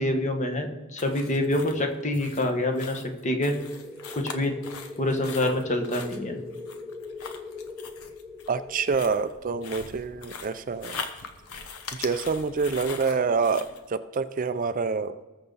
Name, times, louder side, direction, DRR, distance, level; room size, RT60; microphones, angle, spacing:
voice 1, 0.0-3.6 4.2-4.6 5.0-6.4, left 1 dB, 35° left, 4 dB, 1.3 m, -26 dB
sound 1, 1.0-13.8, left 5 dB, 70° left, 1.1 m, -41 dB
sound 2, 3.5-11.8, left 3 dB, 5° left, 1.0 m, -42 dB
voice 2, 8.5-11.0 11.9-15.1, right 5 dB, 35° right, 11 dB, 0.4 m, -27 dB
19.5 x 6.7 x 4.0 m, 1.2 s
head